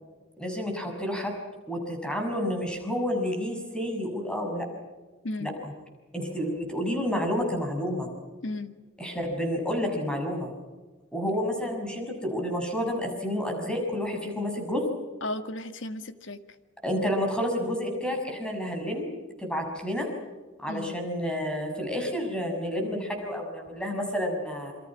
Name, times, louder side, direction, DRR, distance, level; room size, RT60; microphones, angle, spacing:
voice 1, 0.4-1.3 1.7-4.7 5.4-5.7 6.1-8.1 9.0-10.5 11.1-14.8 16.8-19.1 19.4-20.1 20.6-24.7, equal, 5° left, 2 dB, 6.3 m, -30 dB
voice 2, 5.2-5.6 8.4-8.7 15.2-16.4 20.7-21.0, left 2 dB, 80° left, 10 dB, 1.7 m, -34 dB
27.5 x 24.0 x 6.1 m, 1.3 s
head